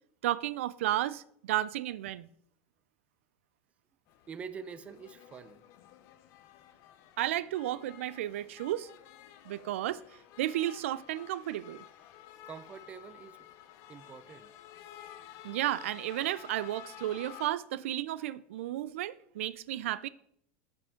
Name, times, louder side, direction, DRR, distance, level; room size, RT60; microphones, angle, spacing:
voice 1, 0.2-2.3 7.2-8.9 9.5-10.0 10.4-11.8 15.4-20.1, right 13 dB, 90° right, 0.4 m, -33 dB
sound 1, 4.1-17.5, left 11 dB, 50° left, 0.6 m, -52 dB
voice 2, 4.3-5.6 12.5-13.4 13.9-14.5, right 6 dB, 20° right, 0.4 m, -45 dB
11.5 x 5.2 x 3.7 m
supercardioid pair, 145°, 7 cm